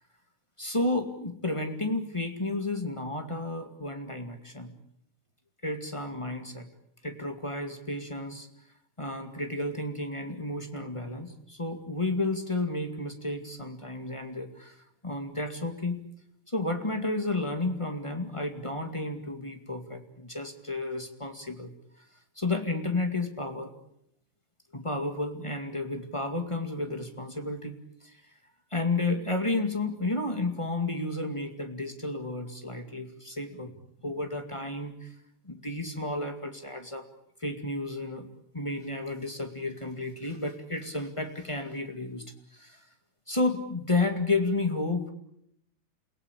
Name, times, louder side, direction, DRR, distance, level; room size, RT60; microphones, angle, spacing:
voice 1, 0.6-4.7 5.6-6.7 7.0-8.5 9.0-14.7 15.0-16.0 16.5-21.7 22.3-23.7 24.7-28.2 28.7-33.8 34.0-35.1 35.4-37.1 37.4-38.3 38.5-42.2 42.5-42.8 43.3-45.1, left 2 dB, 15° left, 5 dB, 0.9 m, -32 dB
29.0 x 18.0 x 8.4 m, 0.74 s
omnidirectional pair, 4.4 m